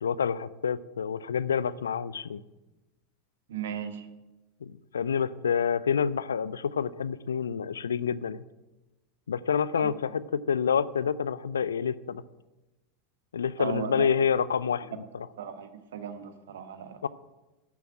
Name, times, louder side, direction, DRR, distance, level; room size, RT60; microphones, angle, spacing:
voice 1, 0.0-2.4 4.6-8.4 9.3-12.2 13.3-14.9 17.0-17.1, left 7 dB, 80° left, 17 dB, 0.5 m, -28 dB
voice 2, 3.5-4.1 9.8-9.9 13.6-14.1 15.4-17.1, right 9 dB, 70° right, 9 dB, 1.2 m, -36 dB
11.0 x 7.0 x 8.8 m, 1.1 s
figure-of-eight pair, 80°, 0 cm